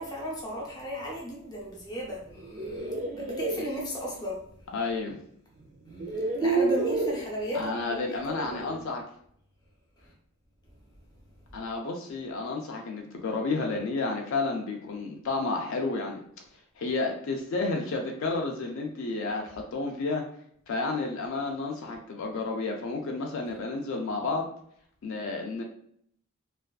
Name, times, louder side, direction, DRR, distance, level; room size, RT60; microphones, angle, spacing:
voice 1, 0.0-4.7 5.9-8.9 10.0-10.1, equal, 20° left, -3 dB, 0.6 m, -36 dB
sound 1, 2.3-3.6 5.1-5.2 5.9-7.3, right 3 dB, 35° right, 0.3 m, -29 dB
voice 2, 4.7-5.2 7.5-9.0 11.5-16.2 16.8-20.2 20.7-24.5 25.0-25.6, left 3 dB, 65° left, 1 dB, 0.3 m, -31 dB
2.4 x 2.2 x 2.3 m, 0.65 s
head